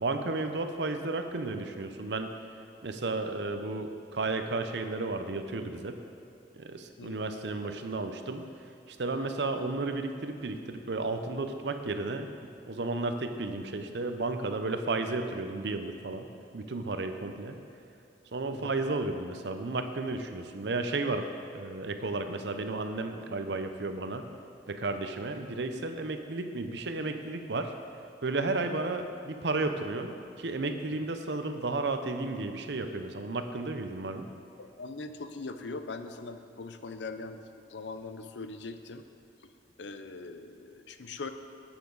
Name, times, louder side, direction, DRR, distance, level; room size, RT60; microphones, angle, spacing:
voice 1, 0.0-2.3 2.8-6.0 6.5-8.4 8.9-12.3 12.7-16.3 16.5-17.6 18.3-21.3 21.5-24.3 24.7-27.7 28.2-34.3, right 3 dB, 70° right, 7 dB, 0.7 m, -33 dB
voice 2, 34.6-39.0 39.8-41.3, left 3 dB, 80° left, 9 dB, 0.6 m, -41 dB
11.5 x 9.0 x 4.0 m, 2.7 s
head